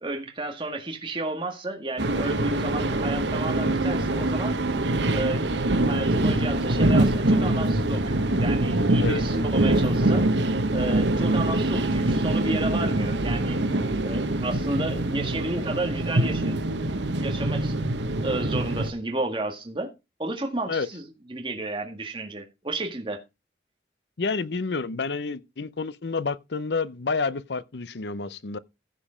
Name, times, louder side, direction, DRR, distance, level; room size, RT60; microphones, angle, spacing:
voice 1, 0.0-4.6 5.1-5.5 5.9-10.3 10.7-13.6 14.0-16.6 17.1-17.8 18.2-19.9 20.2-21.0 21.3-23.2, right 2 dB, 30° right, 1.8 m, -32 dB
sound 1, 2.0-18.9, right 1 dB, 85° right, 1.2 m, -24 dB
voice 2, 24.2-28.6, left 4 dB, 75° left, 0.7 m, -29 dB
15.0 x 5.2 x 5.0 m
head